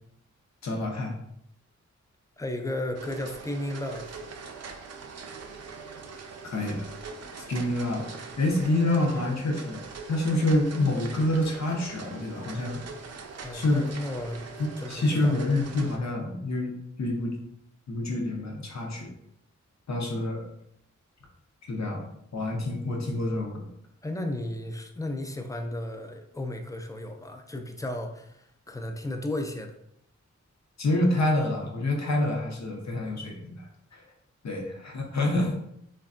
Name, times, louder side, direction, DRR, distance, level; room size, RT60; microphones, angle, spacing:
voice 1, 0.6-1.1 6.4-6.9 7.4-9.8 10.1-12.8 13.5-13.8 14.6-16.7 17.0-17.4 17.9-19.1 19.9-20.4 21.7-22.0 22.3-23.7 30.8-34.0 34.4-35.5, left 1 dB, 65° left, 0 dB, 0.7 m, -27 dB
voice 2, 2.4-4.2 13.4-14.4 14.8-15.4 19.9-20.2 24.0-29.7, left 1 dB, 10° left, 4 dB, 0.3 m, -34 dB
sound 1, 2.9-16.0, right 5 dB, 60° right, 0.4 m, -43 dB
3.3 x 2.2 x 2.4 m, 0.75 s
wide cardioid pair, 60°, 30 cm